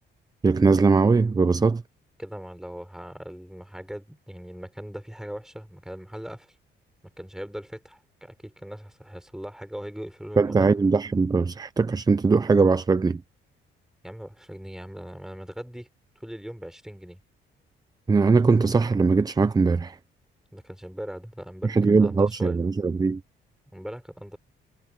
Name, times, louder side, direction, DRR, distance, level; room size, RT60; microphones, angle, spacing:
voice 1, 0.4-1.8 10.4-13.2 18.1-20.0 21.6-23.2, right 4 dB, 20° right, 0.6 m, -20 dB
voice 2, 2.2-6.6 7.2-10.7 14.0-15.9 16.2-17.2 20.5-22.6 23.7-24.4, equal, 5° right, 4.7 m, -39 dB
cardioid pair, 90°, 20 cm